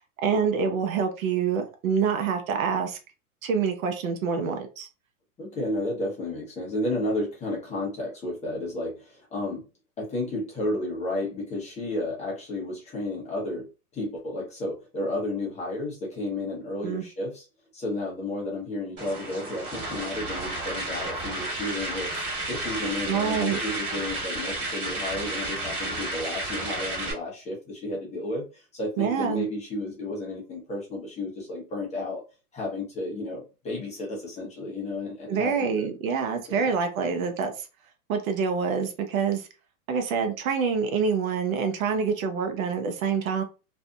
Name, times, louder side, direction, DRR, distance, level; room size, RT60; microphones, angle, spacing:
voice 1, 0.2-3.0 3.4-4.9 16.8-17.0 23.1-23.6 29.0-29.4 35.3-37.7 38.1-39.5 39.9-43.4, right 6 dB, 60° right, 0.8 m, -26 dB
voice 2, 5.4-9.6 10.0-13.7 13.9-17.4 17.7-32.2 32.5-35.9 36.5-36.7, left 1 dB, 15° left, 0.8 m, -32 dB
sound 1, 19.0-27.1, right 2 dB, 25° right, 1.5 m, -32 dB
2.6 x 2.5 x 2.3 m
hypercardioid pair, 130°, 45 cm